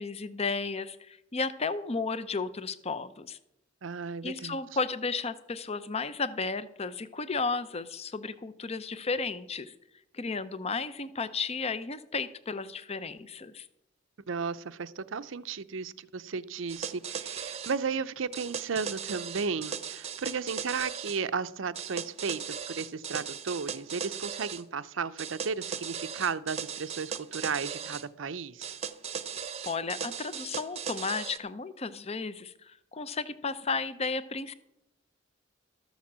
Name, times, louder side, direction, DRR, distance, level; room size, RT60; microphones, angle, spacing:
voice 1, 0.0-3.4 4.2-9.7 10.1-13.7 29.7-34.5, left 4 dB, 30° left, 14 dB, 0.7 m, -33 dB
voice 2, 3.8-4.6 14.3-28.8, right 5 dB, 70° right, 14 dB, 0.6 m, -34 dB
sound 1, 16.7-17.8 18.3-21.2 21.7-24.6 25.2-28.1 28.6-31.4, right 7 dB, 35° right, 0.8 m, -38 dB
13.5 x 7.2 x 7.4 m, 0.80 s
head